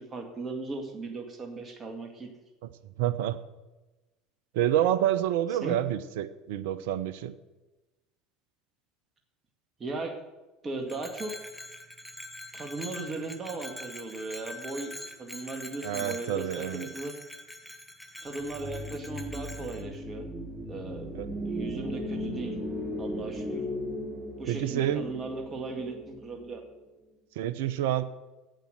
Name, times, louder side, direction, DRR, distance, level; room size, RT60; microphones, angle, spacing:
voice 1, 0.0-2.3 5.5-5.8 9.8-10.1 10.6-11.3 12.5-16.4 16.7-17.1 18.2-20.3 20.7-21.0 21.5-22.6 23.0-23.6 24.4-26.6, right 3 dB, 30° right, 3 dB, 2.1 m, -37 dB
voice 2, 3.0-3.4 4.5-7.3 15.8-16.9 21.1-21.3 24.5-25.0 27.4-28.0, right 11 dB, 70° right, 14 dB, 0.8 m, -28 dB
Bell, 10.9-19.8, left 1 dB, 5° left, 1.5 m, -44 dB
sound 1, 18.4-26.7, equal, 10° right, 3.9 m, -37 dB
10.5 x 8.5 x 7.9 m, 1.1 s
hypercardioid pair, 75°, 0 cm